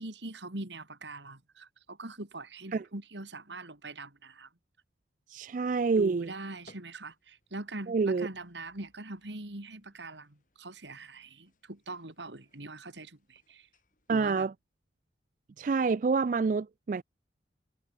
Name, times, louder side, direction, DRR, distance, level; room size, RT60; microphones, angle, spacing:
voice 1, 0.0-4.5 6.0-13.7 14.1-14.5, right 2 dB, 80° right, 2.9 m, -42 dB
voice 2, 5.3-6.3 7.9-8.3 14.1-14.5 15.6-17.0, right 4 dB, 45° right, 0.3 m, -27 dB
sound 1, 5.6-14.4, left 1 dB, 45° left, 5.7 m, -66 dB
head